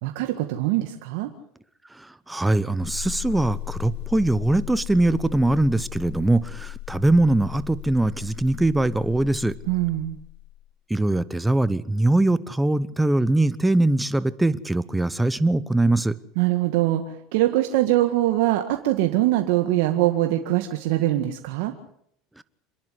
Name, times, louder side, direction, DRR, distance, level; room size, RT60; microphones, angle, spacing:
voice 1, 0.0-1.3 9.7-10.2 16.4-21.7, right 15 dB, 75° right, 5 dB, 1.8 m, -23 dB
voice 2, 2.3-9.5 10.9-16.1, right 2 dB, 5° right, 16 dB, 1.0 m, -22 dB
sound 1, 2.8-10.6, left 18 dB, 70° left, 5.7 m, -37 dB
27.0 x 11.0 x 9.9 m, 0.69 s
supercardioid pair, 110°, 0 cm